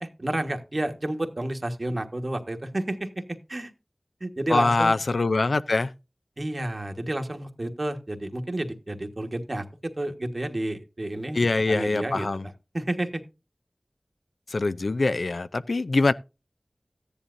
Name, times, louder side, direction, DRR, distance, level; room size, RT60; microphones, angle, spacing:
voice 1, 0.0-3.7 4.2-4.9 6.4-12.3 12.7-13.2, right 1 dB, 50° right, 1.4 m, -30 dB
voice 2, 4.5-5.9 11.3-12.5 14.5-16.1, left 3 dB, 90° left, 0.5 m, -23 dB
14.0 x 10.0 x 2.6 m
wide cardioid pair, 45°, 0 cm